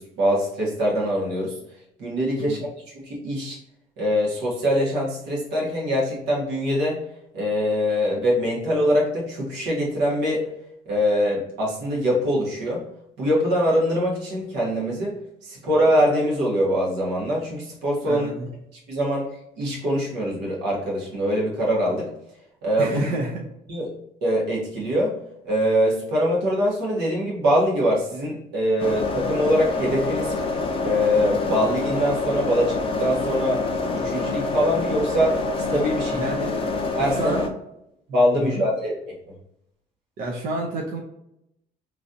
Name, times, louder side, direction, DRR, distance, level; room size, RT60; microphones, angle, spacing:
voice 1, 0.0-1.5 2.0-2.6 3.0-3.6 4.0-7.0 7.3-10.5 10.9-12.8 13.2-15.1 15.4-18.3 18.9-19.3 19.6-22.1 22.6-23.0 23.7-23.9 24.2-25.1 25.4-30.3 30.8-33.6 34.0-35.4 35.7-36.2 37.0-37.4 38.1-38.9, equal, 85° right, -3 dB, 1.3 m, -23 dB
voice 2, 18.1-18.5 22.8-23.5 36.1-36.6 37.2-37.5 38.3-38.6 40.2-41.0, right 2 dB, 55° right, 0 dB, 0.6 m, -29 dB
sound 1, 28.8-37.5, left 3 dB, 30° left, 0.5 m, -26 dB
3.1 x 2.5 x 2.6 m, 0.80 s
cardioid pair, 110°, 17 cm